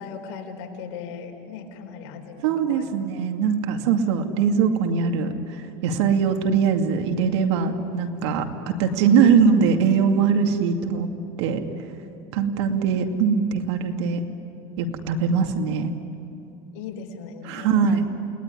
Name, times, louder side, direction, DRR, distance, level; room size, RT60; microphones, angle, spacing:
voice 1, 0.0-2.9 12.6-12.8 16.7-18.0, left 6 dB, 75° left, 3 dB, 4.1 m, -38 dB
voice 2, 2.4-11.1 11.4-11.6 12.3-14.2 14.8-15.9 17.5-18.1, right 6 dB, 90° right, 5 dB, 2.4 m, -21 dB
29.0 x 19.5 x 9.9 m, 2.8 s
cardioid pair, 150°, 14 cm